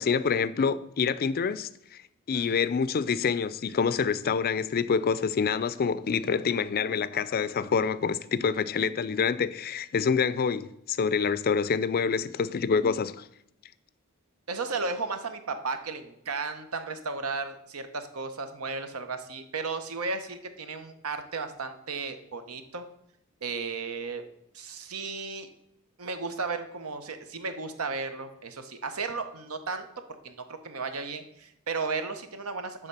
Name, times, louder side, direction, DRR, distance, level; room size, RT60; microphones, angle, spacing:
voice 1, 0.0-1.7 2.3-13.3, left 6 dB, 45° left, 0.4 m, -26 dB
voice 2, 2.3-2.6 14.5-22.8 23.4-24.3 24.5-25.5 26.0-29.9 30.2-32.9, right 4 dB, 80° right, 0.9 m, -34 dB
9.8 x 3.7 x 6.8 m
head